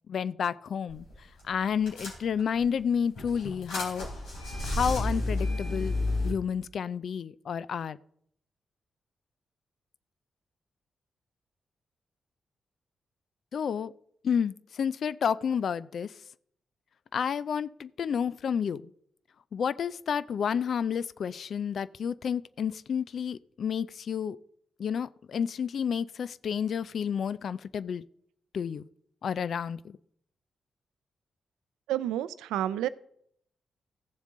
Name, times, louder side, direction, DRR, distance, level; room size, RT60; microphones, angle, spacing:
voice 1, 0.1-1.1 1.4-4.1 4.6-6.0 6.2-8.0 13.5-13.9 14.2-16.2 17.1-18.9 19.5-24.4 24.8-28.0 28.5-28.9 29.2-30.0, left 7 dB, 70° left, 0.4 m, -30 dB
sound 1, 0.9-1.1 1.4-1.5 1.9-2.6 3.1-6.3, left 2 dB, 85° left, 3.8 m, -31 dB
voice 2, 31.9-32.9, right 12 dB, 90° right, 0.4 m, -29 dB
15.0 x 7.2 x 3.8 m
supercardioid pair, 45°, 0 cm